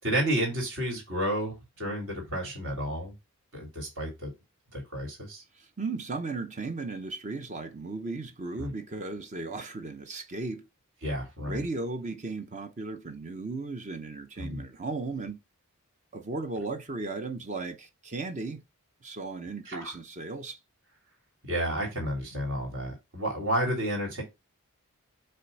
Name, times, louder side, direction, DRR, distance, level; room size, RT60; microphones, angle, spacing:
voice 1, 0.0-3.1 3.5-4.3 4.7-5.4 8.6-8.7 11.0-11.6 14.4-14.6 19.6-20.0 21.4-24.2, right 1 dB, 65° right, 3.3 m, -31 dB
voice 2, 5.5-10.7 11.5-15.4 16.1-18.6 19.0-20.6, right 3 dB, 35° right, 0.6 m, -36 dB
8.0 x 3.3 x 4.0 m
head